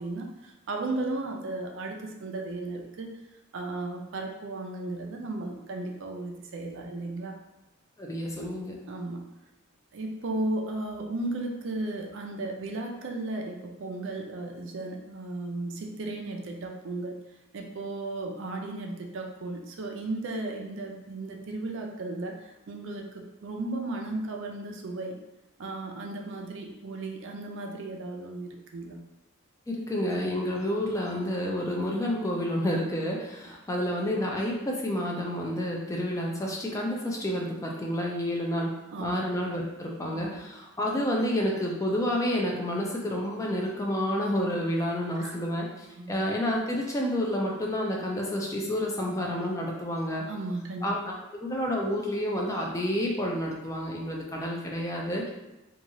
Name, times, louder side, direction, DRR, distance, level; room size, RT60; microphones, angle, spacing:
voice 1, 0.0-3.1 3.5-7.4 8.9-9.2 9.9-17.2 17.5-25.2 25.6-29.0 38.9-39.1 40.1-40.4 45.2-45.5 45.9-46.2 50.3-51.2, right 2 dB, 60° right, 2 dB, 0.4 m, -35 dB
voice 2, 8.0-8.8 29.7-38.7 39.0-50.3 50.8-51.1 51.4-55.3, equal, 15° left, -1 dB, 0.3 m, -29 dB
2.9 x 2.3 x 2.6 m, 0.96 s
head